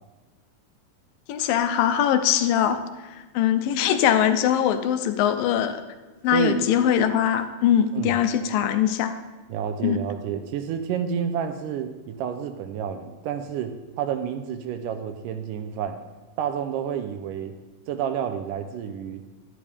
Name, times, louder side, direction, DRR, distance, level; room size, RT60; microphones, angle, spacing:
voice 1, 1.3-5.8 6.2-9.2 9.8-10.0, left 9 dB, 85° left, 9 dB, 2.4 m, -22 dB
voice 2, 9.5-16.0 16.4-17.5 17.9-19.2, right 8 dB, 80° right, 8 dB, 2.1 m, -29 dB
11.0 x 10.5 x 3.4 m, 1.2 s
omnidirectional pair, 4.0 m